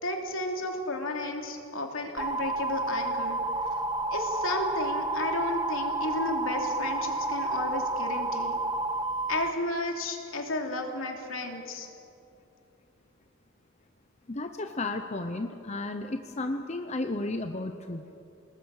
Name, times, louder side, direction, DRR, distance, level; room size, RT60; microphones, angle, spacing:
voice 1, 0.0-3.4 4.1-8.5 9.3-11.9, left 2 dB, 75° left, 2 dB, 2.9 m, -33 dB
sound 1, 2.2-9.5, right 2 dB, 20° right, 1.1 m, -30 dB
voice 2, 14.3-18.0, left 2 dB, 35° left, 6 dB, 0.8 m, -33 dB
29.0 x 19.5 x 6.6 m, 2.7 s
head